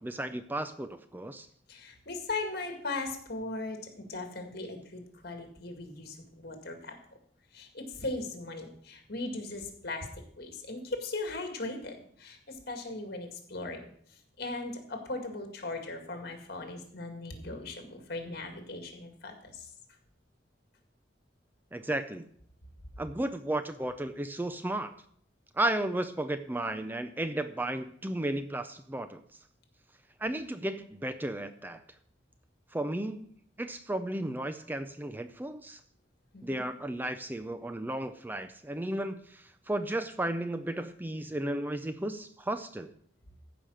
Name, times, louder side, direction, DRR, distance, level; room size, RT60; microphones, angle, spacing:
voice 1, 0.0-1.5 21.7-22.3 23.0-24.9 25.5-29.2 30.2-31.8 32.7-33.3 33.6-35.8 36.4-42.9, right 1 dB, 10° right, 10 dB, 0.4 m, -34 dB
voice 2, 1.7-3.8 4.1-6.9 7.5-10.1 10.4-11.9 12.2-12.4 12.7-13.8 14.4-19.5 36.3-36.6, left 2 dB, 60° left, 4 dB, 2.1 m, -38 dB
14.5 x 5.1 x 6.4 m, 0.64 s
head